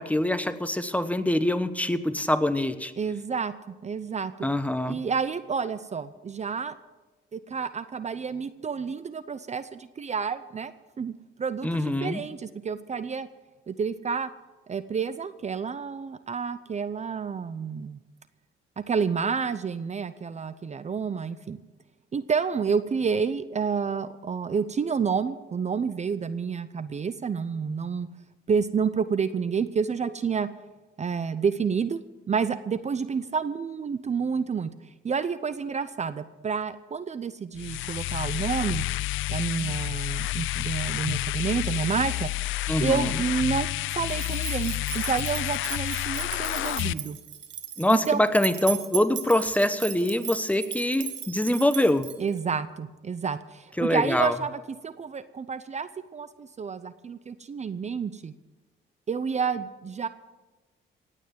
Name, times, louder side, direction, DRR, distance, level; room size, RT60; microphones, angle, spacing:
voice 1, 0.0-2.9 4.4-5.0 11.6-12.2 42.7-43.1 47.8-52.1 53.8-54.3, left 1 dB, 5° left, 11 dB, 1.0 m, -24 dB
voice 2, 3.0-4.3 4.9-6.8 7.3-10.7 11.0-13.3 13.7-14.3 14.7-18.0 18.8-21.6 22.1-28.1 28.5-30.5 31.0-32.0 32.3-34.7 35.0-38.8 39.3-47.2 47.9-48.2 52.2-58.3 59.1-60.1, right 6 dB, 35° right, 14 dB, 0.6 m, -29 dB
sound 1, 37.5-46.9, left 16 dB, 80° left, 0.4 m, -30 dB
sound 2, 44.1-52.4, right 9 dB, 65° right, 1.8 m, -37 dB
17.0 x 9.2 x 7.5 m, 1.2 s
cardioid pair, 90°, 20 cm